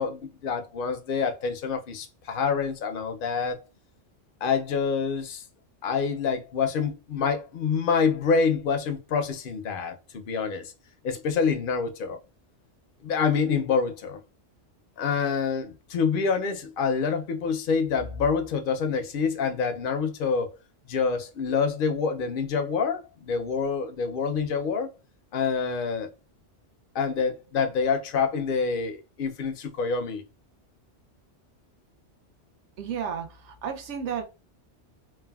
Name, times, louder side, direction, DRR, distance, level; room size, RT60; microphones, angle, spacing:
voice 1, 0.0-3.6 4.4-5.4 5.8-10.7 11.0-12.2 13.0-14.2 15.0-20.5 20.9-24.9 25.3-26.1 26.9-30.2, left 5 dB, 60° left, 0.6 m, -27 dB
voice 2, 32.8-34.2, right 7 dB, 75° right, 1.0 m, -32 dB
3.3 x 2.1 x 2.2 m
omnidirectional pair, 1.2 m